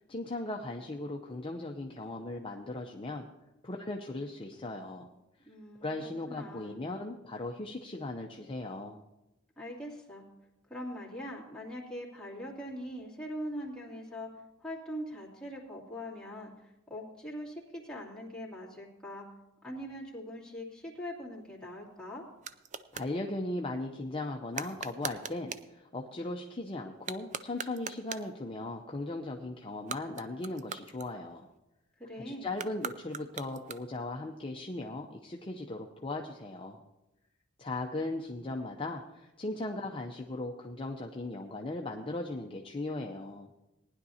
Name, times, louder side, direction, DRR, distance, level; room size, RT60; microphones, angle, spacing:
voice 1, 0.1-3.3 3.6-5.1 5.8-9.0 22.9-31.5 32.2-36.8 37.6-43.5, left 2 dB, 25° left, 2 dB, 0.7 m, -38 dB
voice 2, 5.4-6.9 9.6-10.2 10.7-14.3 14.6-19.3 19.6-22.2 32.0-32.5, equal, 5° left, -6 dB, 2.6 m, -42 dB
sound 1, 21.4-23.2 24.5-25.7 26.9-28.4 29.7-31.6 32.5-34.1, right 7 dB, 35° right, 0.4 m, -42 dB
19.0 x 10.5 x 2.8 m, 0.95 s
head